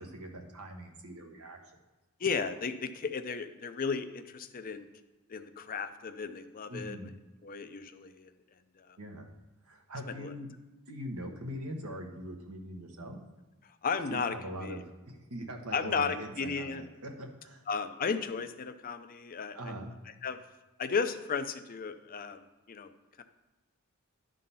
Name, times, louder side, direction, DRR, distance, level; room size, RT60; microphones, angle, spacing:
voice 1, 0.0-1.6 6.7-7.1 9.0-9.3 9.6-10.5 10.9-13.2 14.1-17.6 19.5-19.9, equal, 75° right, 3 dB, 1.2 m, -42 dB
voice 2, 2.2-4.9 5.3-7.0 7.4-8.3 10.2-10.3 13.8-14.3 14.6-14.8 15.7-16.9 17.7-19.6 20.2-20.4 20.8-22.4 22.7-22.9 23.2-23.3, left 5 dB, 40° left, 10 dB, 0.5 m, -34 dB
11.5 x 3.8 x 5.5 m, 1.1 s
head